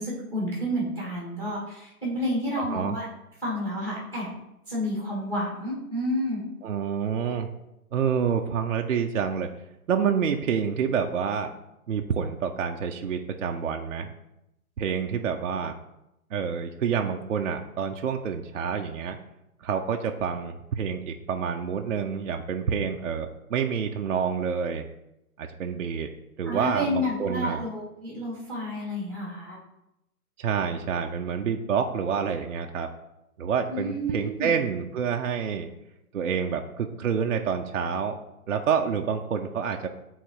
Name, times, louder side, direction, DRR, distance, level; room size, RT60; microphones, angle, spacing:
voice 1, 0.0-3.0 3.4-4.3 4.7-6.4 26.4-29.6 33.7-34.5, equal, 5° left, -5 dB, 1.6 m, -30 dB
voice 2, 6.6-7.5 7.9-9.5 9.9-11.5 11.9-14.1 14.8-15.7 16.3-19.2 19.6-24.9 25.4-26.1 26.4-27.6 30.4-32.9 33.4-35.7 36.1-38.2 38.5-39.9, right 7 dB, 55° right, 3 dB, 0.5 m, -28 dB
8.2 x 3.8 x 3.0 m, 0.85 s
hypercardioid pair, 160°, 46 cm